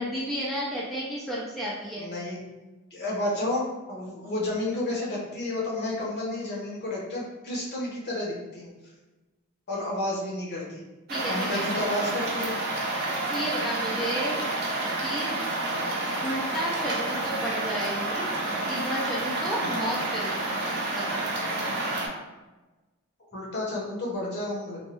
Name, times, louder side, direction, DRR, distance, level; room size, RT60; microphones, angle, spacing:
voice 1, 0.0-2.1 11.1-11.7 13.3-14.4 15.0-15.4 16.2-18.2 18.7-20.4 20.7-21.2, equal, ahead, -6 dB, 0.4 m, -32 dB
voice 2, 2.0-2.4 2.9-8.7 9.7-10.8 11.3-12.5 15.7-15.9 19.6-19.9 23.3-24.8, left 1 dB, 50° left, -4 dB, 0.8 m, -31 dB
sound 1, 11.1-22.1, right 2 dB, 50° right, 0.6 m, -29 dB
3.0 x 2.2 x 2.9 m, 1.1 s
head